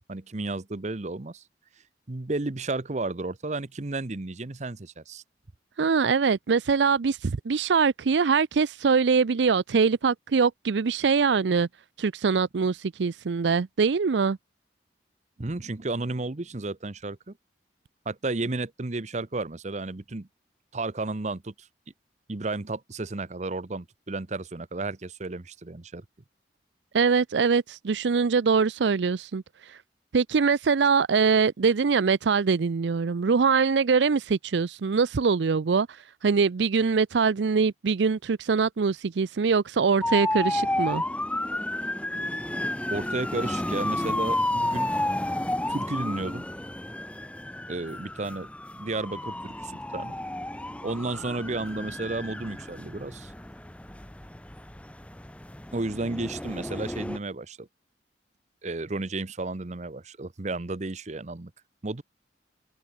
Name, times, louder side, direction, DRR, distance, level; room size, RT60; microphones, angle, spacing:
voice 1, 0.1-1.4 2.1-5.2 15.4-17.4 18.1-20.3 20.7-21.7 22.3-26.0 42.9-44.9 45.7-46.4 47.7-48.5 48.7-50.2 50.5-53.3 55.7-57.7 58.6-61.5 61.8-62.0, right 2 dB, 40° right, 0.9 m, -33 dB
voice 2, 5.8-11.7 12.0-14.4 26.9-29.8 30.1-36.0 36.2-41.0, right 5 dB, 85° right, 0.5 m, -23 dB
sound 1, 40.0-57.2, left 1 dB, 5° left, 1.0 m, -31 dB
head